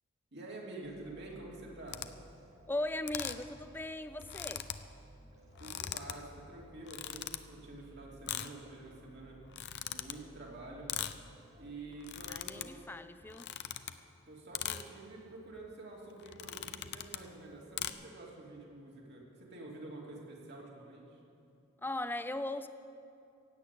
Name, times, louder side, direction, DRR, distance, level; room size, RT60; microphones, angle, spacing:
voice 1, 0.3-2.0 5.6-9.4 9.9-10.9 11.6-12.9 14.3-21.2, right 2 dB, 55° right, -2 dB, 2.9 m, -48 dB
sound 1, 0.8-13.1, equal, 35° right, 2.2 m, -58 dB
sound 2, 1.9-2.1 3.1-3.5 3.8-3.9 4.1-4.8 5.5-6.1 6.8-7.4 8.3-8.5 9.4-10.1 10.9-11.2 11.9-12.6 13.3-14.0 14.5-14.8 15.5-15.7 16.2-17.3 17.8-17.9, left 11 dB, 55° left, 0.6 m, -40 dB
voice 2, 2.7-4.7 12.3-13.4 21.8-22.7, left 1 dB, 10° left, 11 dB, 0.5 m, -38 dB
16.5 x 8.5 x 8.4 m, 2.6 s
head